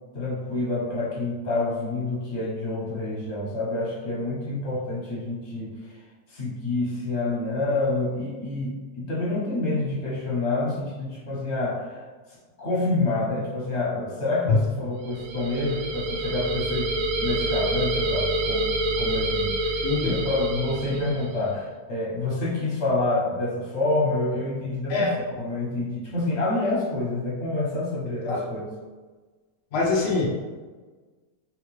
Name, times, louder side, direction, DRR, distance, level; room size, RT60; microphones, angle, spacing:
voice 1, 0.1-6.0 6.3-18.7 19.0-25.1 25.4-28.7, left 2 dB, 45° left, -7 dB, 1.2 m, -28 dB
sound 1, 15.0-21.4, right 1 dB, 70° right, 1.0 m, -27 dB
voice 2, 19.8-20.2 24.9-25.1 28.3-28.4 29.7-30.3, left 3 dB, 75° left, -3 dB, 0.5 m, -23 dB
3.9 x 2.3 x 3.1 m, 1.4 s
omnidirectional pair, 1.8 m